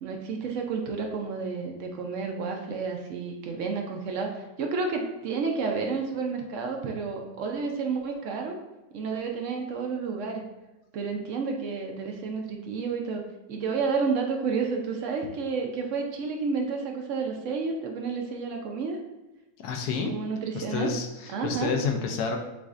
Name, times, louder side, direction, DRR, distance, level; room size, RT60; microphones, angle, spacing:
voice 1, 0.0-8.5 8.9-10.5 10.9-19.0 20.1-20.9 21.3-21.7, right 4 dB, 70° right, 2 dB, 0.7 m, -30 dB
voice 2, 19.6-20.1 20.5-22.4, left 5 dB, 75° left, 3 dB, 1.1 m, -29 dB
7.0 x 2.5 x 2.4 m, 1.1 s
omnidirectional pair, 1.8 m